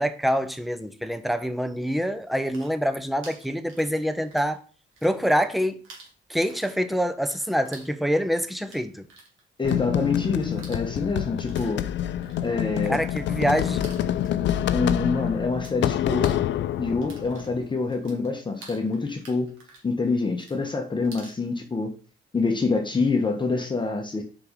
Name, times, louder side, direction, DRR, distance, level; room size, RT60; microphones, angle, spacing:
voice 1, 0.0-4.6 5.0-5.8 6.3-9.1 12.9-13.9, equal, ahead, 0.7 m, -25 dB
sound 1, 2.5-4.6 4.8-5.6 5.8-15.8 16.0-21.4, right 3 dB, 85° right, 2.3 m, -50 dB
sound 2, 9.6-17.7, left 11 dB, 65° left, 0.4 m, -27 dB
voice 2, 9.6-11.8 12.4-13.0 14.7-16.4 16.8-19.6 19.8-21.9 22.3-24.2, left 4 dB, 25° left, 1.0 m, -26 dB
5.0 x 4.5 x 5.1 m
cardioid pair, 90°, 20 cm